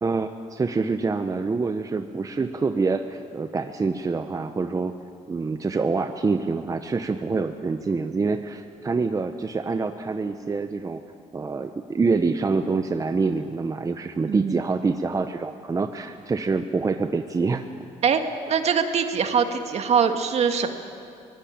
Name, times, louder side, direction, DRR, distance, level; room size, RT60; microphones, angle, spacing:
voice 1, 0.0-4.9 5.3-11.0 11.3-17.6, right 4 dB, 25° right, 8 dB, 0.9 m, -26 dB
voice 2, 14.3-14.6 18.0-18.2 18.5-20.7, right 6 dB, 55° right, 7 dB, 1.9 m, -22 dB
23.0 x 19.0 x 8.8 m, 2.5 s
cardioid pair, 95°, 13 cm